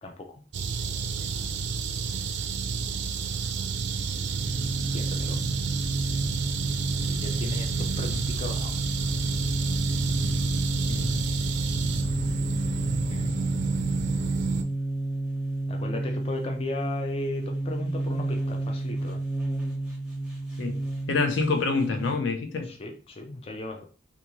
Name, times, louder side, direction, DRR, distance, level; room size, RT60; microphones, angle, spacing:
voice 1, 0.0-0.4 4.9-5.4 7.0-8.8 13.1-13.3 15.7-19.2 22.6-23.9, left 2 dB, 30° left, 0.3 m, -36 dB
sound 1, 0.5-14.6, right 5 dB, 70° right, 0.3 m, -30 dB
sound 2, 3.9-22.2, right 2 dB, 5° right, 0.8 m, -31 dB
voice 2, 10.9-11.3 20.6-22.7, left 4 dB, 85° left, 0.5 m, -27 dB
2.5 x 2.3 x 2.9 m
head